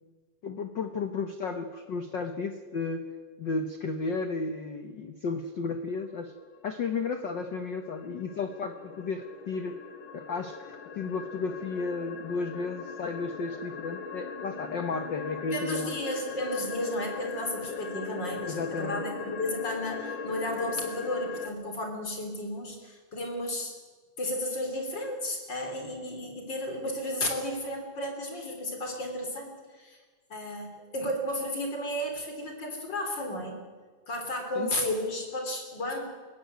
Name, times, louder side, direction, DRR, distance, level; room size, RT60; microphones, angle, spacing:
voice 1, 0.4-3.1 3.4-6.3 6.6-9.8 10.1-15.9 18.5-19.0 34.6-34.7, left 4 dB, 85° left, 8 dB, 1.0 m, -33 dB
sound 1, 5.9-21.5, left 6 dB, 50° left, 1.6 m, -40 dB
voice 2, 15.5-23.7 24.2-30.0 30.3-33.6 34.1-36.0, left 1 dB, 35° left, 4 dB, 4.0 m, -33 dB
22.0 x 16.5 x 9.3 m, 1.5 s
omnidirectional pair, 3.8 m